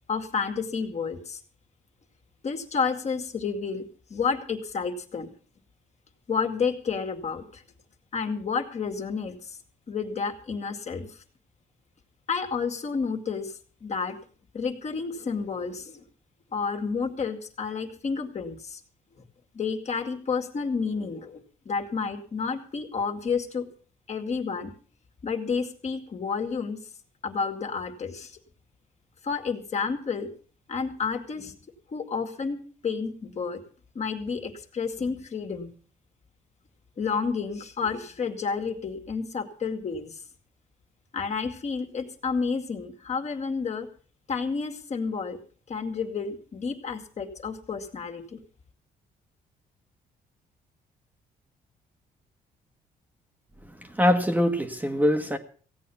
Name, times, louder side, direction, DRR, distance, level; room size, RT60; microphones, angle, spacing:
voice 1, 0.1-1.4 2.4-5.3 6.3-7.6 8.1-9.6 9.9-11.1 12.3-13.5 13.8-14.2 14.5-16.0 16.5-18.8 19.5-23.7 24.1-24.7 25.2-26.8 27.2-28.4 29.2-30.3 30.7-31.6 31.9-33.6 34.0-35.7 37.0-40.2 41.1-43.9 44.3-45.4 45.7-48.4, left 5 dB, 45° left, 2.2 m, -30 dB
voice 2, 53.9-55.4, equal, 10° right, 1.4 m, -23 dB
16.5 x 8.7 x 7.0 m
cardioid pair, 100°, 16 cm